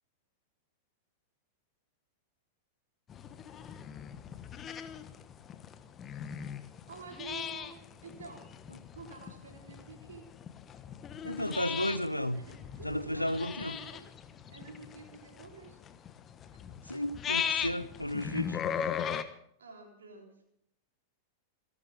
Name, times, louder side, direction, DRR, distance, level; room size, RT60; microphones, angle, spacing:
sound 1, 3.1-19.2, left 8 dB, 25° left, 1.3 m, -39 dB
voice 1, 6.9-8.5 8.9-10.3 11.7-12.0 12.4-14.1 14.5-15.8 18.3-18.4 19.6-20.4, right 4 dB, 65° right, 3.6 m, -49 dB
voice 2, 11.2-12.5 12.8-13.8 16.8-18.6, left 1 dB, 90° left, 0.8 m, -33 dB
28.0 x 12.0 x 3.5 m
figure-of-eight pair, 90°, 0 cm